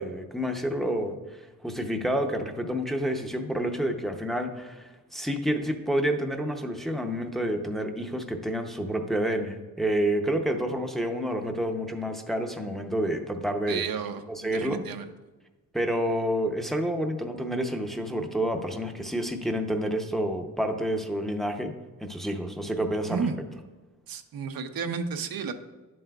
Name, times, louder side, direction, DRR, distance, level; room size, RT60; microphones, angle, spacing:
voice 1, 0.0-13.8 14.3-14.8 15.7-21.7 22.0-23.3, equal, ahead, 3 dB, 0.6 m, -29 dB
voice 2, 13.7-15.1 23.1-23.4 24.1-25.5, right 6 dB, 85° right, 8 dB, 0.7 m, -32 dB
10.5 x 7.5 x 2.3 m, 1.2 s
wide cardioid pair, 105°, 35 cm